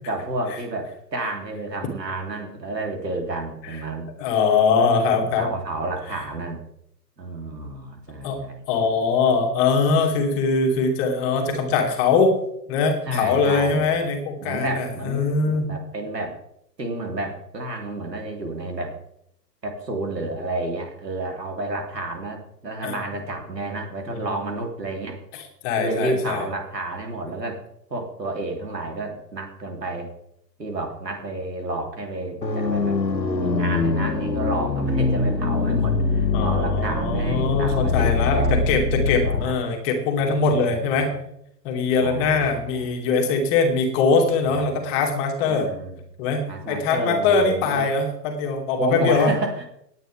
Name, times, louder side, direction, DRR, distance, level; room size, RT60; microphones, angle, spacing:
voice 1, 0.1-4.1 5.2-6.6 7.2-9.0 13.0-13.9 14.4-16.4 16.8-19.0 19.6-25.2 25.8-27.6 27.9-30.1 30.6-33.0 33.4-38.6 39.2-39.6 40.2-41.1 42.0-42.9 44.5-44.9 45.5-46.0 46.5-47.9 48.8-49.7, right 2 dB, 75° right, 2 dB, 3.4 m, -30 dB
voice 2, 4.2-5.5 8.2-8.4 8.7-12.3 12.7-15.8 22.8-22.9 24.1-24.4 25.6-26.4 36.3-41.1 41.6-45.7 46.2-49.3, left 4 dB, 25° left, 3 dB, 2.4 m, -22 dB
sound 1, 32.4-39.4, left 3 dB, 80° left, 1.6 m, -23 dB
19.5 x 9.3 x 3.5 m, 0.78 s
figure-of-eight pair, 120°, 50 cm